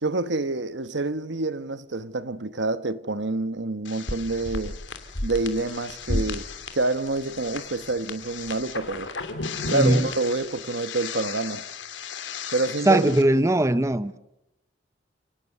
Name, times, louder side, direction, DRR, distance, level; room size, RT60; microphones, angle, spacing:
voice 1, 0.0-4.7 5.2-6.5 6.7-9.1 9.7-11.6 12.5-13.2, right 2 dB, 70° right, 1.2 m, -27 dB
sound 1, 3.8-13.2, left 3 dB, 90° left, 3.0 m, -34 dB
voice 2, 9.7-10.0 12.9-14.2, right 1 dB, 15° right, 0.8 m, -20 dB
30.0 x 19.0 x 6.8 m
head